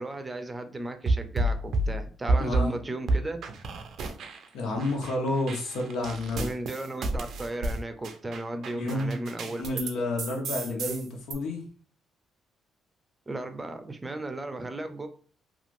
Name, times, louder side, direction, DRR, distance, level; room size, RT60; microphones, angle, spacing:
voice 1, 0.0-3.4 6.4-9.6 13.3-15.1, right 1 dB, 20° right, 7 dB, 0.5 m, -35 dB
sound 1, 1.1-2.7 3.1-4.5 4.8-9.9 10.2-11.3, right 2 dB, 65° right, 0.4 m, -30 dB
voice 2, 2.4-2.8 4.5-6.5 8.7-9.2 9.5-11.6, left 2 dB, 80° left, 2 dB, 0.8 m, -30 dB
3.0 x 2.4 x 2.5 m, 0.44 s
cardioid pair, 90°, 0 cm